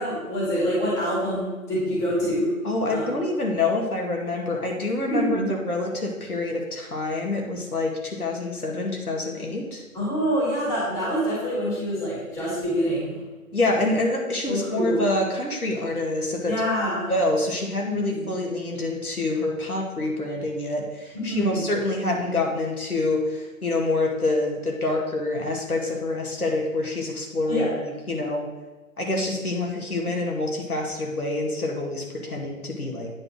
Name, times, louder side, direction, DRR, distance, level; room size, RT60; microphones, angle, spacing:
voice 1, 0.0-2.5 2.9-3.0 5.1-5.5 9.9-13.2 14.4-15.1 16.5-17.1 17.9-18.3 21.1-21.7 27.5-27.7, equal, 5° left, -7 dB, 1.7 m, -26 dB
voice 2, 2.6-9.8 13.5-16.6 17.1-28.5 29.0-33.1, left 2 dB, 80° left, 0 dB, 2.2 m, -26 dB
8.7 x 4.2 x 6.4 m, 1.2 s
figure-of-eight pair, 150°, 44 cm